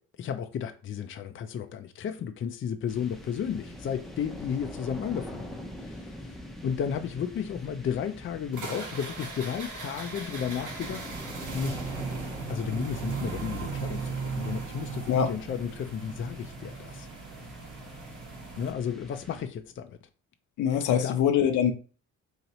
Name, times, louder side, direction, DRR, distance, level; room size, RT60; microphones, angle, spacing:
voice 1, 0.2-5.5 5.8-6.4 6.6-11.0 11.5-11.8 12.5-17.1 18.6-20.0 20.9-21.2, left 8 dB, 40° left, 0.5 m, -33 dB
sound 1, 2.9-19.8, left 1 dB, ahead, 0.7 m, -44 dB
sound 2, 8.5-18.7, right 4 dB, 85° right, 1.3 m, -37 dB
voice 2, 20.6-21.7, left 8 dB, 80° left, 0.7 m, -24 dB
2.9 x 2.8 x 4.1 m
cardioid pair, 90°, 30 cm